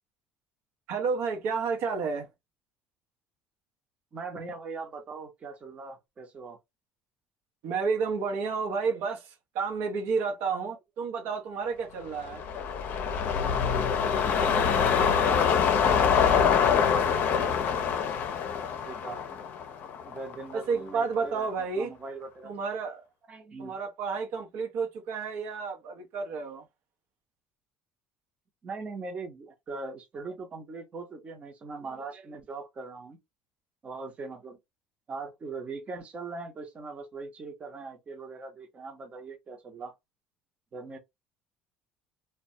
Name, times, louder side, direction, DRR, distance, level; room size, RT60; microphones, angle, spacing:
voice 1, 0.9-2.3 7.6-12.4 20.5-21.9 22.4-23.0 23.6-26.6, right 5 dB, 70° right, 0.7 m, -31 dB
voice 2, 4.1-6.6 14.3-18.1 18.8-19.2 20.0-22.5 23.3-23.8 28.6-33.2 33.8-34.6 35.1-39.9 40.7-41.0, right 4 dB, 35° right, 0.7 m, -41 dB
sound 1, 12.1-20.5 20.9-21.0, left 7 dB, 55° left, 0.5 m, -25 dB
2.2 x 2.1 x 2.7 m
supercardioid pair, 105°, 4 cm